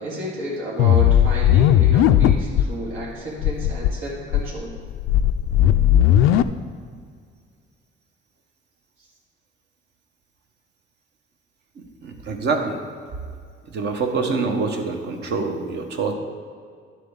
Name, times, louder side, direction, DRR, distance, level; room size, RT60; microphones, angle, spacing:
voice 1, 0.0-4.7 9.0-9.1, right 1 dB, 75° right, -5 dB, 2.3 m, -31 dB
sound 1, 0.8-2.7 3.0-3.1 3.4-3.9 4.3-6.4, left 11 dB, 85° left, 0.4 m, -16 dB
voice 2, 11.8-12.8 13.7-16.1, right 4 dB, 55° right, 4 dB, 1.1 m, -25 dB
11.0 x 7.5 x 3.7 m, 2.1 s
cardioid pair, 155°, 21 cm